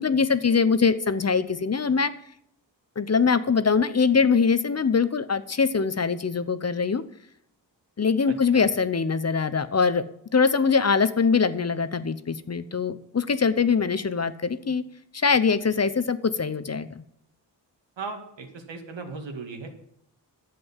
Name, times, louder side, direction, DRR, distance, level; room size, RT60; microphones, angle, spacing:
voice 1, 0.0-2.1 3.0-7.0 8.0-10.0 10.3-14.8 15.1-16.9, left 5 dB, 35° left, 13 dB, 0.8 m, -23 dB
voice 2, 18.0-19.7, right 4 dB, 85° right, 4 dB, 2.2 m, -37 dB
11.0 x 7.8 x 7.2 m, 0.72 s
wide cardioid pair, 95°, 43 cm